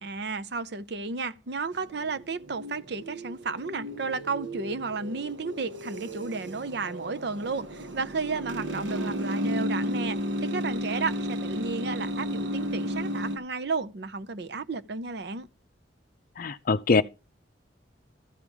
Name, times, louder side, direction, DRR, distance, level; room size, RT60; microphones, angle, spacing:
voice 1, 0.0-15.5, right 4 dB, 65° right, 0.7 m, -33 dB
sound 1, 1.7-13.4, equal, 85° right, 1.1 m, -33 dB
voice 2, 16.4-17.0, left 4 dB, 50° left, 0.5 m, -23 dB
14.0 x 5.4 x 4.8 m
head